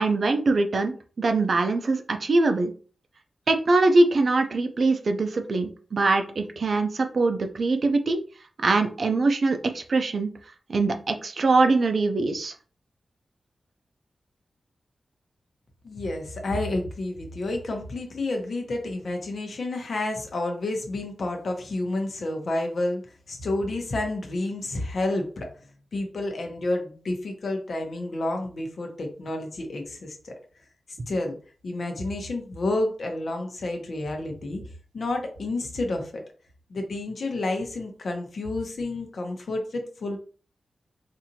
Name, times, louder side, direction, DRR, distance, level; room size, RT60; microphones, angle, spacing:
voice 1, 0.0-2.7 3.5-8.2 8.6-10.3 10.7-12.5, right 3 dB, 50° right, 6 dB, 0.5 m, -23 dB
voice 2, 15.8-23.0 23.3-25.5 25.9-30.3 31.1-31.4 31.6-34.6 34.9-36.2 36.7-40.2, left 2 dB, 60° left, 3 dB, 0.9 m, -30 dB
4.1 x 2.7 x 2.7 m, 0.39 s
wide cardioid pair, 155°, 0 cm